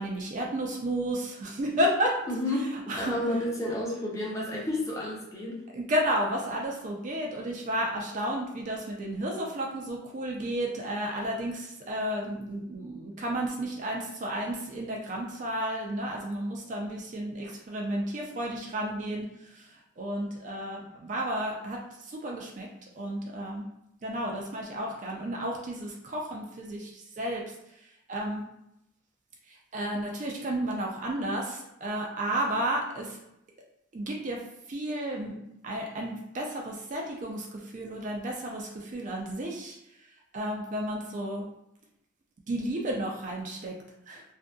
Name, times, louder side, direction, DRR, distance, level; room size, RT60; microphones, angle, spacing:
voice 1, 0.0-2.2 2.9-3.2 5.7-22.7 23.0-23.7 24.0-27.4 28.1-28.4 29.5-33.2 33.9-34.4 34.7-35.3 35.6-39.8 40.3-41.5 42.5-43.8 44.1-44.2, right 1 dB, 40° right, 0 dB, 0.3 m, -32 dB
voice 2, 2.3-2.7 3.0-5.6, left 1 dB, 15° left, -4 dB, 0.6 m, -31 dB
2.6 x 2.6 x 2.3 m, 0.81 s
head